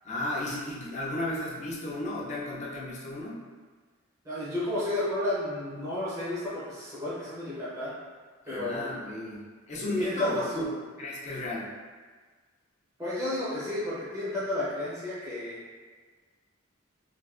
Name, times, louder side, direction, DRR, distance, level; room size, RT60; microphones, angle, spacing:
voice 1, 0.0-3.4 8.5-10.7 11.0-11.7, left 1 dB, 35° left, -5 dB, 0.5 m, -34 dB
voice 2, 4.2-7.9 8.4-8.9 10.0-10.7 13.0-15.6, left 1 dB, 15° right, -11 dB, 0.8 m, -32 dB
3.3 x 2.5 x 2.4 m, 1.5 s
head